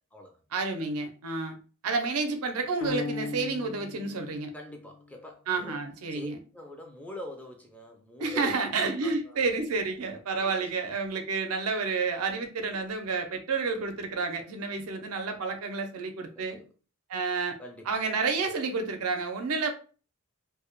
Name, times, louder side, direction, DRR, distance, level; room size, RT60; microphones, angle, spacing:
voice 1, 0.5-1.6 1.8-4.5 5.5-6.4 8.2-16.6 17.1-17.6 17.9-19.7, right 4 dB, 90° right, 6 dB, 0.5 m, -30 dB
sound 1, 2.8-5.1, left 4 dB, 65° left, 0.5 m, -38 dB
voice 2, 4.5-5.8 6.1-8.7 9.0-9.4 10.3-10.5 14.7-14.8 16.4-16.7 17.6-18.0, left 1 dB, 5° left, 1 dB, 0.3 m, -45 dB
2.1 x 2.0 x 2.9 m, 0.37 s
head